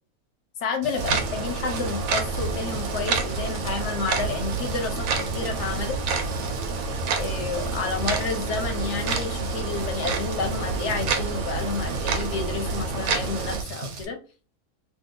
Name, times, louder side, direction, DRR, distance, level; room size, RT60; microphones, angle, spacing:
voice 1, 0.6-6.0 7.2-14.2, left 4 dB, 60° left, 4 dB, 0.9 m, -30 dB
Rain, 0.8-14.0, right 3 dB, 60° right, 0.9 m, -38 dB
sound 1, 1.0-13.6, right 4 dB, 85° right, 1.1 m, -28 dB
2.7 x 2.5 x 3.7 m, 0.36 s
omnidirectional pair, 1.6 m